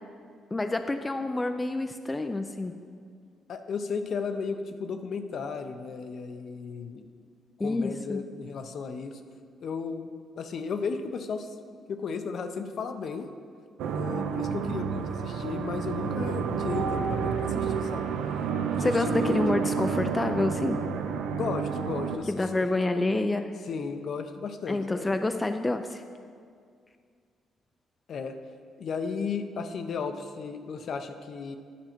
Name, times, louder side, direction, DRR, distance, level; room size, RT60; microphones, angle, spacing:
voice 1, 0.5-2.7 7.6-8.2 18.8-20.8 22.3-23.5 24.7-26.0, left 2 dB, 20° left, 7 dB, 0.3 m, -28 dB
voice 2, 3.5-7.1 7.6-9.2 9.6-10.1 10.4-11.5 11.9-13.3 13.9-18.1 18.7-19.4 21.3-22.3 23.7-25.1 28.1-28.4 28.8-31.6, left 5 dB, 60° left, 7 dB, 0.6 m, -34 dB
sound 1, 13.8-22.2, right 6 dB, 90° right, 0.5 m, -30 dB
10.0 x 5.4 x 4.4 m, 2.2 s
cardioid pair, 90°, 0 cm